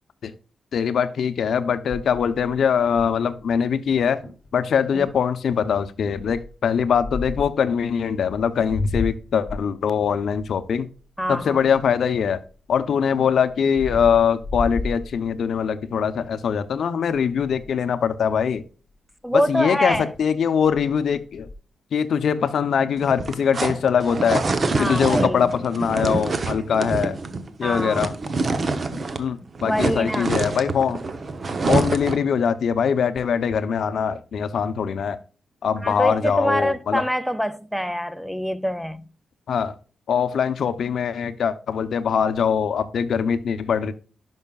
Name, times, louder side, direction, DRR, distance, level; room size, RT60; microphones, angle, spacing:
voice 1, 0.7-4.2 4.5-10.9 11.3-12.4 12.7-18.6 19.3-21.5 21.9-24.4 24.8-27.2 27.6-28.1 28.9-31.0 31.7-35.2 35.6-37.0 39.5-39.7 40.1-43.9, left 7 dB, 70° left, 0.7 m, -22 dB
sound 1, 1.9-3.4 3.9-4.0 4.2-4.5 5.0-5.3 6.2-7.6 8.3-12.2 12.7-15.7 16.2-16.5 16.7-16.8 17.1-17.8 19.5-19.6 19.9-20.3 20.6-21.6, left 2 dB, 40° left, 2.6 m, -33 dB
voice 2, 11.2-11.6 19.2-20.1 24.7-25.4 27.6-28.1 29.6-30.3 31.6-31.8 35.8-39.1, equal, ahead, 0.4 m, -25 dB
sound 2, 23.0-29.3 29.5-32.3, right 3 dB, 40° right, 0.8 m, -26 dB
11.0 x 5.6 x 2.3 m
wide cardioid pair, 125°, 0 cm